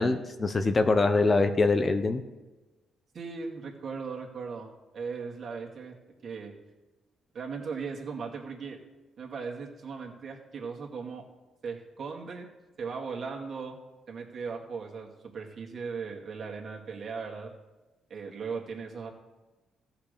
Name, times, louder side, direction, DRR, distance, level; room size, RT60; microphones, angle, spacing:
voice 1, 0.0-2.2, left 3 dB, 30° left, 8 dB, 0.9 m, -24 dB
voice 2, 3.1-5.9 6.2-6.5 7.3-8.8 9.2-11.2 11.6-12.5 12.8-13.8 14.1-17.5 18.1-19.1, right 5 dB, 50° right, 0 dB, 2.3 m, -38 dB
14.5 x 6.0 x 6.8 m, 1.1 s
cardioid pair, 90°, 0 cm